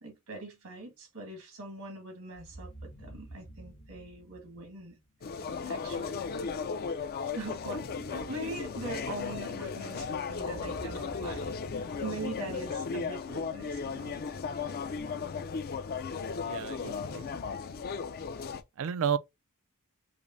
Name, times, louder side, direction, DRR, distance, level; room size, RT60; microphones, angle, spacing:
voice 1, 0.0-5.0 5.6-6.1 7.3-14.1, right 2 dB, 80° right, 1.5 m, -42 dB
sound 1, 2.3-5.3 10.3-13.5, right 1 dB, 75° left, 1.3 m, -49 dB
sound 2, 5.2-18.6, left 5 dB, 45° left, 0.4 m, -36 dB
voice 2, 16.4-17.3 18.8-19.2, right 7 dB, 60° right, 0.4 m, -31 dB
4.9 x 2.0 x 2.6 m
head